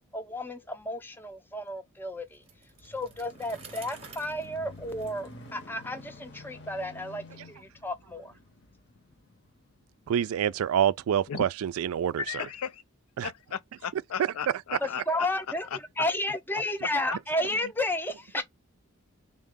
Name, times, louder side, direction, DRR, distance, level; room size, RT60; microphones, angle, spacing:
voice 1, 0.1-2.4 2.8-8.3 14.8-18.4, left 1 dB, 10° left, 0.4 m, -32 dB
sound 1, 2.2-11.0 11.6-11.7, left 2 dB, 50° left, 0.8 m, -50 dB
Bicycle, 2.3-6.2, right 5 dB, 25° right, 0.7 m, -51 dB
voice 2, 10.1-12.2 13.2-13.3, right 9 dB, 80° right, 0.3 m, -26 dB
voice 3, 12.2-12.8 13.2-15.3 15.7-15.8, left 7 dB, 90° left, 0.4 m, -35 dB
3.6 x 2.1 x 3.5 m
head